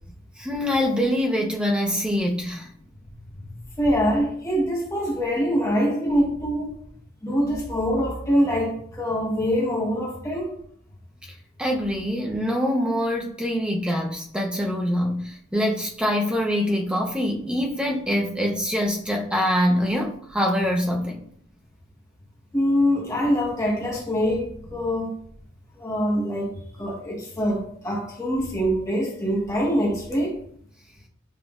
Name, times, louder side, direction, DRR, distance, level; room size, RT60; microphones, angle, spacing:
voice 1, 0.4-2.7 11.6-21.2, equal, 5° right, 0.5 m, -24 dB
voice 2, 3.8-6.7 7.2-10.5 22.5-25.1 25.8-30.4, equal, 15° left, 1.1 m, -24 dB
7.0 x 2.4 x 2.3 m
head